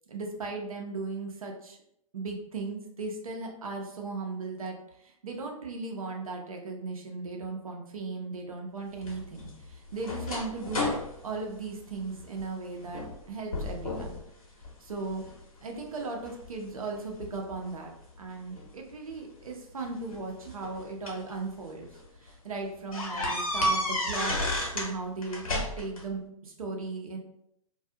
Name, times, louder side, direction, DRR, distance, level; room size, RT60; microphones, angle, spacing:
voice 1, 0.1-1.8 2.1-10.9 11.2-14.2 14.8-15.2 15.6-17.9 18.2-24.3 24.7-27.2, right 3 dB, 80° right, 1 dB, 0.7 m, -37 dB
sound 1, 9.0-12.5 12.9-13.2 13.5-14.2 14.6-15.4 16.0-17.4 18.6-18.7 19.9-21.3 21.8-22.0 22.3-22.4 22.9-24.9 25.2-26.0, left 1 dB, 80° left, 0.9 m, -32 dB
2.4 x 2.3 x 2.7 m, 0.73 s
figure-of-eight pair, 110°, 18 cm